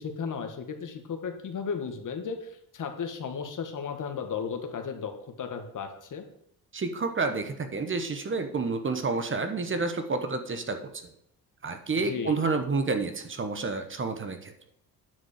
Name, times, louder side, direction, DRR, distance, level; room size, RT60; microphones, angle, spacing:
voice 1, 0.0-5.1 5.4-6.2 12.0-12.4, left 6 dB, 55° left, 6 dB, 1.6 m, -35 dB
voice 2, 6.7-11.1 11.6-14.5, right 4 dB, 30° right, 8 dB, 1.1 m, -29 dB
9.6 x 5.1 x 6.6 m, 0.73 s
cardioid pair, 100°, 37 cm